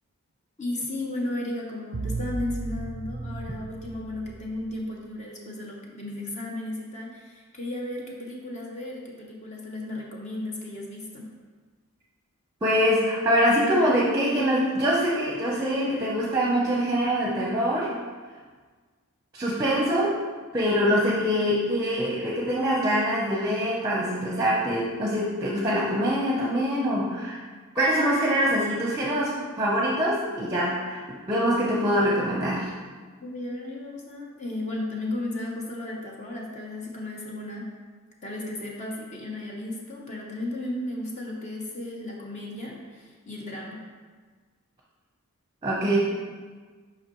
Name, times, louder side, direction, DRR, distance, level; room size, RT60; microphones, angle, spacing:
voice 1, 0.6-11.3 33.2-37.7 38.2-43.8, left 1 dB, 30° left, -2 dB, 0.8 m, -34 dB
sound 1, 1.9-5.0, right 3 dB, 45° right, 0.3 m, -35 dB
voice 2, 12.6-17.9 19.3-20.2 20.5-27.4 27.7-31.0 31.3-32.7 45.6-46.0, equal, 15° right, -4 dB, 0.7 m, -24 dB
7.2 x 5.2 x 3.0 m, 1.5 s
head